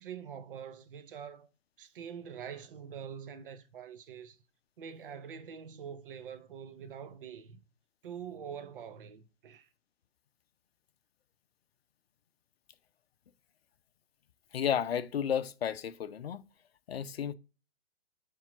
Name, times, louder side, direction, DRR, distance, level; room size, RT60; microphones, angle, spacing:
voice 1, 0.0-1.5 1.8-4.4 4.8-7.6 8.0-9.7, right 7 dB, 50° right, 0.8 m, -45 dB
voice 2, 14.5-16.4 16.9-17.3, left 8 dB, 60° left, 0.5 m, -32 dB
7.1 x 3.7 x 3.8 m
figure-of-eight pair, 120°, 35 cm